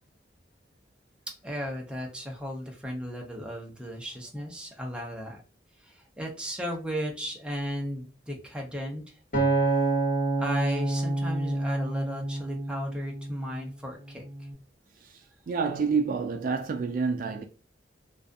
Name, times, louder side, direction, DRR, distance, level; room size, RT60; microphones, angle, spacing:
voice 1, 1.3-5.4 5.8-9.2 10.4-14.5, equal, 5° right, 0.6 m, -35 dB
Acoustic guitar, 9.3-13.7 14.3-14.5, right 2 dB, 45° left, 1.1 m, -28 dB
voice 2, 15.5-17.4, right 5 dB, 50° right, 0.3 m, -28 dB
2.4 x 2.3 x 2.5 m
head